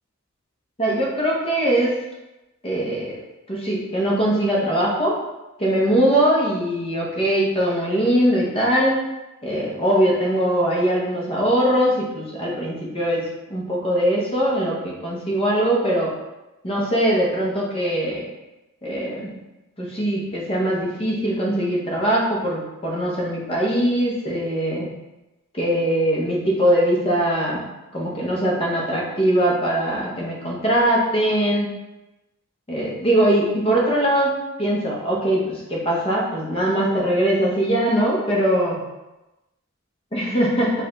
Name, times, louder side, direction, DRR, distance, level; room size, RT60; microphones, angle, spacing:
voice 1, 0.8-1.9 2.6-3.2 3.5-5.1 5.6-8.9 9.4-13.2 13.5-16.1 16.6-18.3 18.8-19.3 19.8-24.9 25.5-27.6 27.9-31.7 32.7-38.8 40.1-40.7, right 1 dB, 25° left, -4 dB, 0.8 m, -21 dB
4.8 x 2.3 x 3.8 m, 1.0 s
head